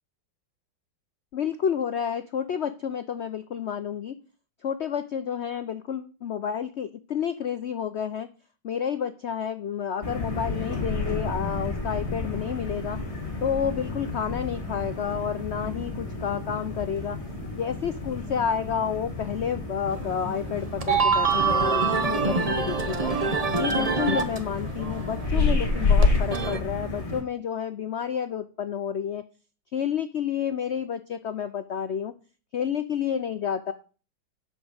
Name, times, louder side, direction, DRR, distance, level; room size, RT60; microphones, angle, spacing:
voice 1, 1.3-4.2 4.6-8.3 8.6-13.0 13.4-17.2 17.5-23.1 23.6-29.2 29.7-32.1 32.5-33.7, left 8 dB, 75° left, 10 dB, 0.6 m, -30 dB
sound 1, 10.0-27.2, left 3 dB, 35° left, 3.3 m, -30 dB
sound 2, 19.9-20.0 20.6-24.4 24.6-26.6, right 4 dB, 30° right, 0.8 m, -25 dB
11.0 x 5.1 x 7.9 m, 0.38 s
omnidirectional pair, 2.0 m